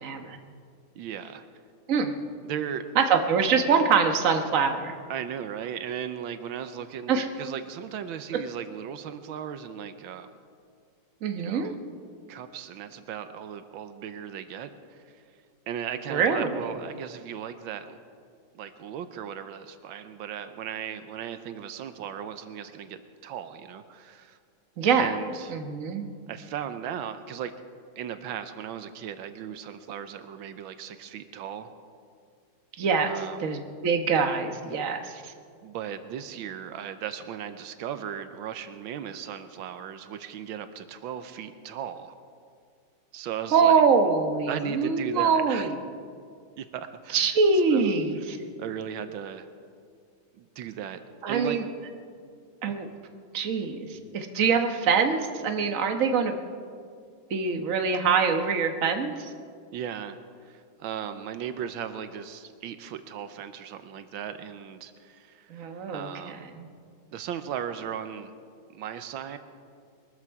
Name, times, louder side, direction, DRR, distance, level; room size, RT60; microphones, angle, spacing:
voice 1, 0.0-0.4 1.9-2.1 3.0-4.9 7.1-7.3 11.2-11.7 16.1-16.7 24.8-25.1 25.5-26.0 32.8-33.1 33.4-35.3 43.5-45.7 47.1-48.4 51.2-51.6 52.6-52.9 53.3-56.3 57.3-59.3 65.5-66.1 66.6-66.7, right 5 dB, 45° right, 5 dB, 1.4 m, -24 dB
voice 2, 0.9-1.4 2.4-2.9 5.1-10.3 11.4-11.8 12.3-15.2 15.7-18.0 18.5-24.4 25.0-25.5 26.3-27.5 28.0-31.7 33.0-33.4 35.6-42.1 43.1-43.8 44.5-45.7 46.6-47.4 47.7-47.9 48.6-49.5 50.3-51.0 51.3-51.6 59.7-65.6 65.9-66.4 67.1-68.3 68.7-69.4, right 9 dB, 85° right, 10 dB, 1.5 m, -37 dB
22.5 x 13.5 x 4.8 m, 2.2 s
omnidirectional pair, 2.1 m